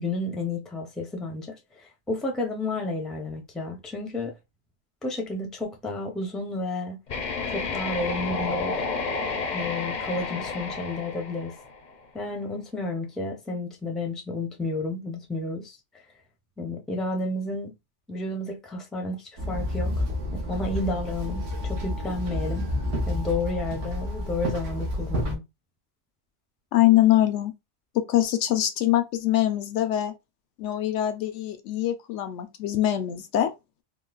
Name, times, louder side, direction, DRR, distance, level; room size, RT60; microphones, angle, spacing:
voice 1, 0.0-4.3 5.0-7.0 7.5-8.8 9.5-11.6 12.1-15.8 16.6-17.7 18.1-20.0 20.3-22.7 23.1-25.4, left 2 dB, ahead, 0.5 m, -31 dB
sound 1, 7.1-12.0, left 4 dB, 50° left, 0.6 m, -31 dB
Walk footsteps / Chatter / Hiss, 19.4-25.3, left 1 dB, 85° right, 1.3 m, -29 dB
voice 2, 26.7-27.5 27.9-30.1 30.6-33.5, left 13 dB, 80° left, 0.9 m, -23 dB
3.7 x 2.2 x 2.3 m
omnidirectional pair, 1.2 m